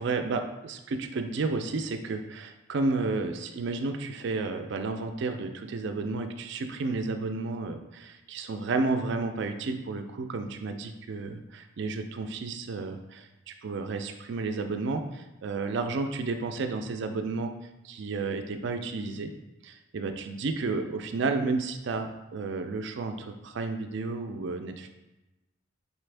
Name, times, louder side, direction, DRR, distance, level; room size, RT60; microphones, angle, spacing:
voice 1, 0.0-17.5 17.8-19.3 19.6-24.9, right 3 dB, 65° right, 6 dB, 0.4 m, -32 dB
4.3 x 3.4 x 3.3 m, 1.0 s
head